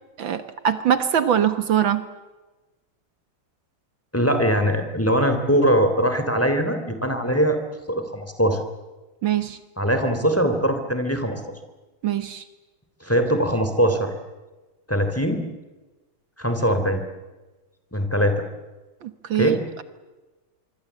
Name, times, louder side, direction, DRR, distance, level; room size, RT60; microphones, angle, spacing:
voice 1, 0.2-2.0 9.2-9.6 12.0-12.4 19.0-19.8, right 9 dB, 70° right, 11 dB, 2.0 m, -22 dB
voice 2, 4.1-7.6 7.9-8.6 9.8-11.4 13.0-14.1 14.9-15.4 16.4-17.0 17.9-18.4 19.3-19.6, equal, 5° left, 7 dB, 3.2 m, -21 dB
25.5 x 24.5 x 8.3 m, 1.2 s
omnidirectional pair, 2.2 m